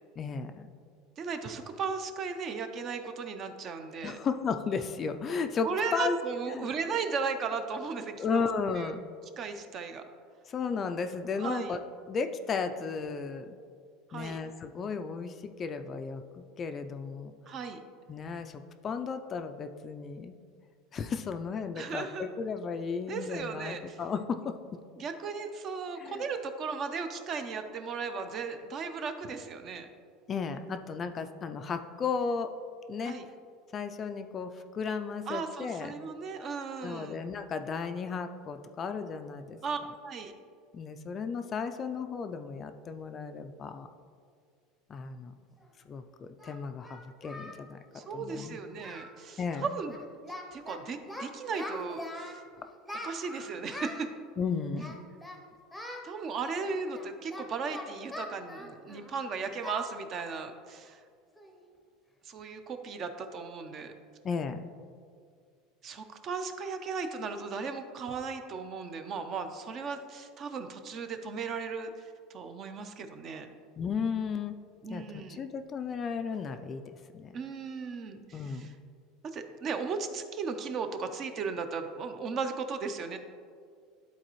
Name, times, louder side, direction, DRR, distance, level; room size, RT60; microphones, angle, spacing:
voice 1, 0.2-0.7 4.0-6.2 6.5-6.7 8.2-9.0 10.5-11.8 12.1-13.6 14.1-17.3 18.1-20.4 20.9-24.6 26.0-26.2 30.3-32.5 32.9-33.2 33.7-35.9 36.8-39.6 40.7-43.9 44.9-45.3 45.9-47.8 48.1-48.6 49.4-49.6 54.4-55.0 64.2-64.6 73.8-74.6 74.9-77.4 78.3-78.8, left 5 dB, 25° left, 8 dB, 0.3 m, -34 dB
voice 2, 1.2-4.2 5.6-8.5 8.8-8.9 9.4-10.0 11.4-11.8 14.1-14.4 17.5-17.8 21.8-22.3 23.1-24.0 25.0-29.9 33.0-33.3 35.3-37.2 39.6-40.3 47.9-50.0 50.5-52.4 53.0-54.1 56.0-61.0 62.2-63.9 65.8-73.5 74.8-75.4 77.3-78.7 79.3-83.2, right 5 dB, 35° right, 8 dB, 0.5 m, -36 dB
Singing, 45.6-45.7 46.4-47.6 47.9-48.1 48.4-48.5 48.8-49.1 49.4-49.6 49.9-50.8 51.1-52.4 52.9-54.1 54.7-55.4 55.7-56.0 56.5-59.2 59.6-59.8 60.2-60.4 60.8-60.9 61.4-61.6, left 1 dB, ahead, 0.7 m, -43 dB
11.5 x 4.0 x 3.0 m, 2.1 s
supercardioid pair, 150°, 0 cm